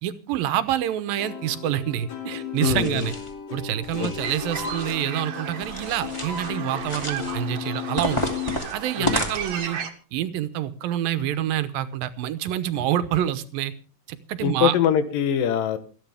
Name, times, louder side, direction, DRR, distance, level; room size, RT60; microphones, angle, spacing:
voice 1, 0.0-3.1 3.5-8.3 8.7-9.8 10.1-13.7 14.1-14.7, right 11 dB, 85° right, 12 dB, 2.7 m, -27 dB
Plucked string instrument, 1.2-8.6, left 9 dB, 55° left, 3.7 m, -35 dB
voice 2, 2.6-3.1 4.0-4.1 9.0-9.2 14.4-15.8, left 9 dB, 80° left, 11 dB, 2.9 m, -23 dB
sound 1, 2.7-3.3 3.8-5.0 5.6-6.5 6.8-7.4 8.0-9.7, left 1 dB, 10° left, 2.0 m, -31 dB
sound 2, 4.2-9.9, right 6 dB, 60° right, 2.7 m, -35 dB
28.5 x 9.9 x 3.5 m, 0.36 s
omnidirectional pair, 3.9 m